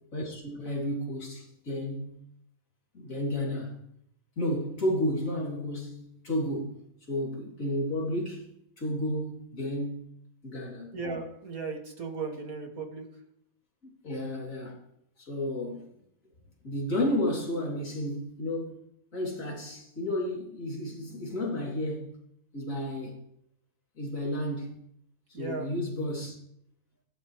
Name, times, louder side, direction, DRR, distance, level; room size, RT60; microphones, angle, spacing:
voice 1, 0.1-2.2 2.9-3.8 4.4-10.1 10.4-11.0 13.8-14.8 15.2-15.9 16.6-18.8 19.1-22.2 22.5-23.2 24.0-24.8 25.3-26.4, left 1 dB, 65° left, 3.9 m, -32 dB
voice 2, 10.9-13.0 25.3-25.7, right 4 dB, 75° right, 2.7 m, -36 dB
19.0 x 12.5 x 3.4 m
omnidirectional pair, 1.5 m